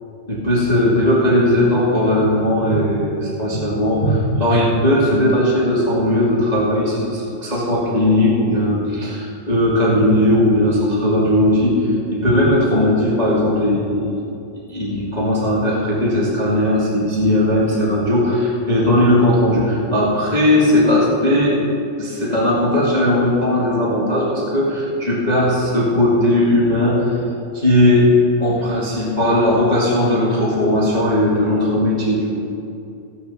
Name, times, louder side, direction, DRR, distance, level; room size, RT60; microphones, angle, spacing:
voice 1, 0.3-14.1 14.7-21.6 22.0-27.2 27.5-28.1 28.4-32.3, left 1 dB, 45° left, -5 dB, 0.5 m, -17 dB
16.0 x 6.4 x 6.6 m, 2.7 s
omnidirectional pair, 4.1 m